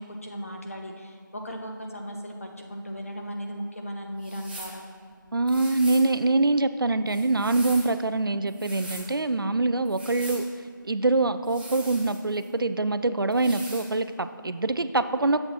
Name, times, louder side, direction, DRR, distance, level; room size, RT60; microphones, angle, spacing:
voice 1, 0.0-4.8, equal, 40° left, 2 dB, 0.8 m, -37 dB
sound 1, 4.2-4.8 5.5-6.1 7.1-7.9 8.5-9.1 9.9-10.5 11.4-12.5 13.3-13.9, right 1 dB, 25° right, 1.1 m, -41 dB
voice 2, 5.3-10.4 10.9-15.4, right 2 dB, 80° right, 11 dB, 0.4 m, -24 dB
9.7 x 7.8 x 2.9 m, 2.1 s
figure-of-eight pair, 170°, 11 cm